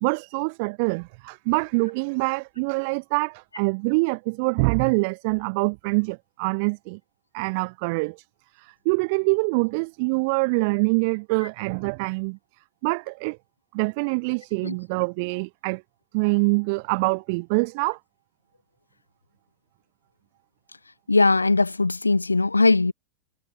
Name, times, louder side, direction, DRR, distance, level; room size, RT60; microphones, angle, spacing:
voice 1, 0.0-7.0 7.3-8.2 8.6-12.4 12.8-13.4 13.7-15.8 16.1-18.0, right 31 dB, 45° right, 0.4 m, -25 dB
voice 2, 21.1-22.9, left 3 dB, 80° left, 0.4 m, -20 dB
figure-of-eight pair, 90°, 0 cm